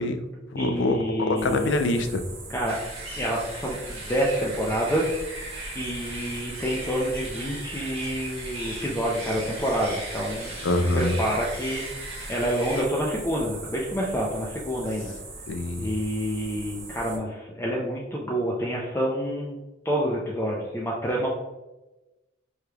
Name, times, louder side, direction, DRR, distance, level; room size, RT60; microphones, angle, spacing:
voice 1, 0.0-2.2 10.6-11.2 15.5-15.9, left 2 dB, 75° left, 7 dB, 0.4 m, -25 dB
voice 2, 0.6-1.7 2.5-2.8 3.1-5.1 5.7-10.5 10.9-15.1 15.8-21.3, equal, 15° left, -4 dB, 0.4 m, -28 dB
sound 1, 1.4-17.2, right 3 dB, 55° right, 0.9 m, -41 dB
sound 2, 2.7-12.8, right 1 dB, 30° right, 1.3 m, -38 dB
4.9 x 3.1 x 2.3 m, 1.1 s
head